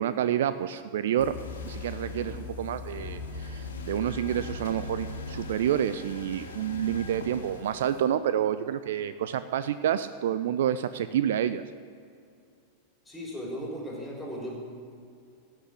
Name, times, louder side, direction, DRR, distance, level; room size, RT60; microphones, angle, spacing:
voice 1, 0.0-1.3 1.7-11.6, right 10 dB, 60° right, 13 dB, 0.4 m, -28 dB
sound 1, 1.2-8.0, left 3 dB, 65° left, 1.9 m, -39 dB
voice 2, 13.1-14.6, equal, 5° left, -3 dB, 4.0 m, -36 dB
16.0 x 6.0 x 8.4 m, 2.3 s
figure-of-eight pair, 90°, 0 cm